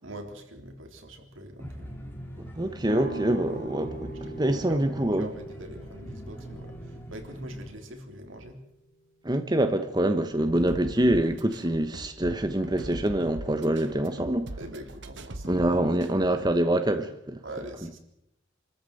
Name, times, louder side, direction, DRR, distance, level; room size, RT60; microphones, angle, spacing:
voice 1, 0.0-2.1 4.2-8.6 14.6-15.6 17.4-18.0, right 1 dB, 90° right, 3.7 m, -43 dB
sound 1, 1.6-7.7, equal, 10° left, 2.5 m, -42 dB
voice 2, 2.4-5.3 9.2-14.5 15.4-17.4, right 1 dB, 20° right, 1.1 m, -25 dB
sound 2, 2.9-8.6, right 2 dB, 45° right, 3.8 m, -41 dB
sound 3, 10.3-16.5, right 2 dB, 65° right, 1.3 m, -41 dB
25.5 x 14.0 x 7.8 m
head